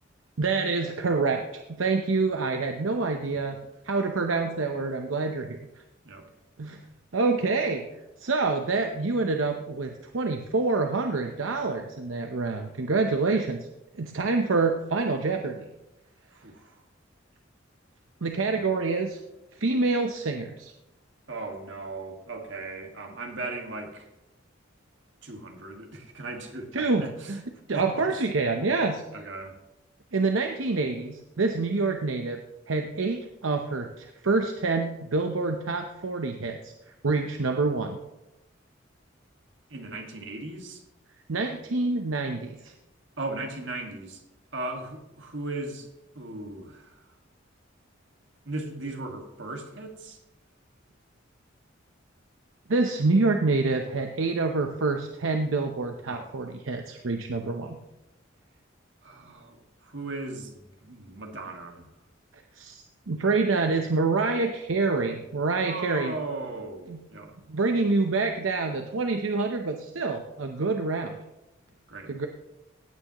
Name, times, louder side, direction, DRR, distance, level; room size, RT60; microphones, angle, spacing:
voice 1, 0.4-3.6 3.8-5.6 6.6-6.8 7.1-7.9 8.2-13.6 13.9-15.7 18.2-19.2 19.5-20.7 26.7-27.4 27.7-29.0 30.1-32.4 32.7-36.7 37.0-38.0 41.3-42.7 52.7-57.8 62.6-66.1 66.9-67.0 67.5-71.1 72.1-72.3, right 3 dB, 85° right, 4 dB, 0.8 m, -27 dB
voice 2, 16.3-16.8 18.5-18.8 21.3-24.1 25.2-27.4 27.7-27.9 29.1-29.6 39.7-40.8 43.2-44.2 44.5-45.9 46.1-47.0 48.5-50.2 56.1-56.3 59.0-61.9 65.7-67.4 71.9-72.2, right 2 dB, 65° right, 3 dB, 1.9 m, -37 dB
16.5 x 9.0 x 3.0 m, 0.94 s
head